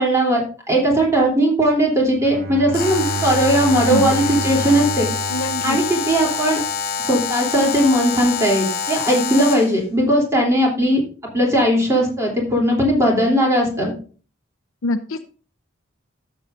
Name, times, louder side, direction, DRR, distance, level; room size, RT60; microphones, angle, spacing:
voice 1, 0.0-5.1 5.6-6.6 7.0-11.0 11.3-13.9, right 1 dB, 15° right, -2 dB, 3.1 m, -18 dB
Bowed string instrument, 2.2-6.5, right 3 dB, 50° right, 1.0 m, -29 dB
Alarm, 2.7-9.8, left 6 dB, 50° left, 1.1 m, -26 dB
voice 2, 5.3-5.8 14.8-15.2, left 1 dB, 85° left, 6 dB, 0.6 m, -24 dB
12.5 x 7.6 x 2.6 m, 0.38 s
head